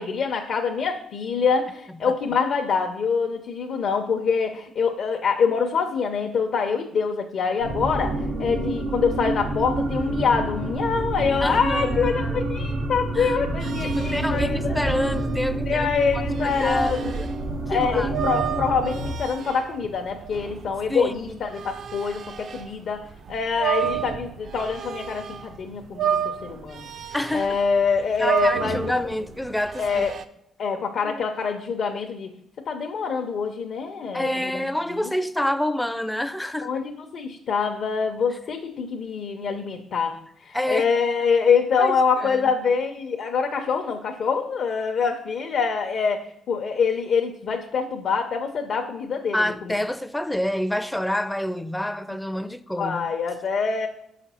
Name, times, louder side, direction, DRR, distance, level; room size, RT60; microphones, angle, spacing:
voice 1, 0.0-14.8 15.7-17.2 17.7-26.9 27.3-28.9 29.8-30.2 30.6-32.3 32.7-34.7 34.9-35.1 36.6-40.2 40.4-46.2 46.5-49.7 52.8-53.9, left 5 dB, 65° left, 0.6 m, -25 dB
sound 1, 7.6-19.1, right 1 dB, 85° right, 2.4 m, -28 dB
voice 2, 11.4-12.4 13.1-13.3 13.8-16.3 16.6-17.3 17.7-18.1 20.9-21.4 23.8-23.9 27.1-27.6 28.2-30.1 31.0-31.2 34.1-36.7 40.5-40.9 41.8-42.5 49.3-53.1, left 1 dB, 5° left, 0.4 m, -28 dB
sound 2, 13.6-22.7 23.1-25.6 25.8-30.2, right 9 dB, 55° right, 0.4 m, -31 dB
5.4 x 5.0 x 4.2 m
cardioid pair, 90°, 0 cm